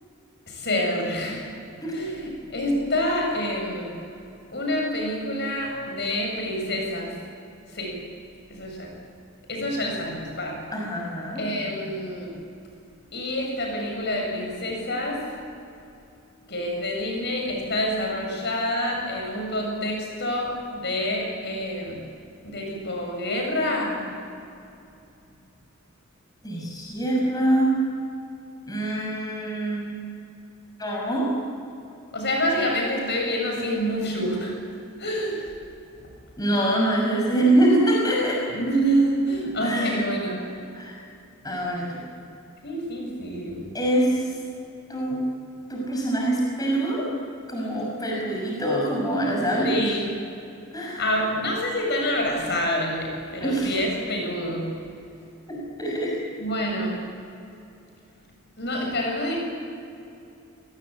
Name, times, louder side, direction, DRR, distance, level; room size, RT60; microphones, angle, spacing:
voice 1, 0.5-1.5 1.9-3.9 4.5-7.1 7.7-8.0 8.5-9.0 9.5-10.6 11.3-12.3 13.1-15.3 16.5-22.0 22.4-24.0 32.1-34.6 35.0-35.5 36.0-36.1 38.5-40.4 42.6-43.7 49.6-50.1 51.0-54.7 56.4-57.0 58.6-59.4, equal, 55° left, 1 dB, 7.7 m, -27 dB
voice 2, 10.7-11.4 26.4-27.8 28.7-30.2 30.8-31.3 36.4-38.4 39.6-40.0 40.7-40.9 41.4-42.0 43.7-44.3 44.9-45.2 45.7-47.1 47.5-49.9 50.7-51.1 53.4-53.8 55.5-56.2, right 1 dB, 20° left, -2 dB, 6.1 m, -24 dB
30.0 x 19.0 x 8.6 m, 2.6 s
head